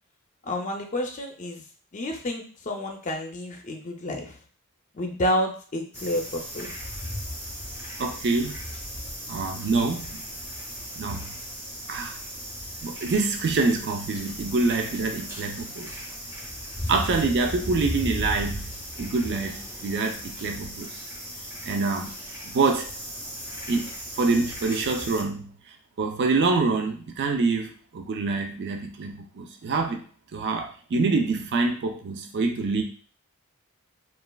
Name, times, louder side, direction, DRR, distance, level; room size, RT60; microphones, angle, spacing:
voice 1, 0.4-1.6 1.9-4.4 4.9-6.7, equal, 35° left, 3 dB, 0.5 m, -29 dB
sound 1, 5.9-25.2, equal, 10° right, 0.8 m, -36 dB
voice 2, 8.0-8.6 9.3-10.2 11.0-11.3 11.9-12.2 12.8-15.9 16.9-18.7 19.0-21.0 21.6-22.2 22.4-22.9 23.7-23.9 24.2-25.5 26.0-30.0 30.3-32.8, right 3 dB, 50° right, 4 dB, 0.4 m, -26 dB
3.1 x 2.4 x 2.2 m, 0.42 s
head